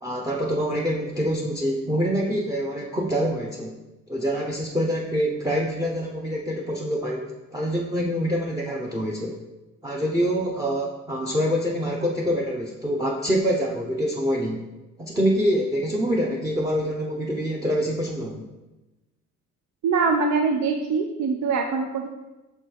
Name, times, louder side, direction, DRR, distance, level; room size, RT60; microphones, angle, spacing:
voice 1, 0.0-3.7 4.1-7.3 7.5-9.4 9.8-14.6 15.0-18.4, equal, 10° right, -1 dB, 0.7 m, -25 dB
voice 2, 19.8-22.1, right 4 dB, 70° right, 3 dB, 0.6 m, -23 dB
6.3 x 3.3 x 4.5 m, 1.1 s
cardioid pair, 90°, 30 cm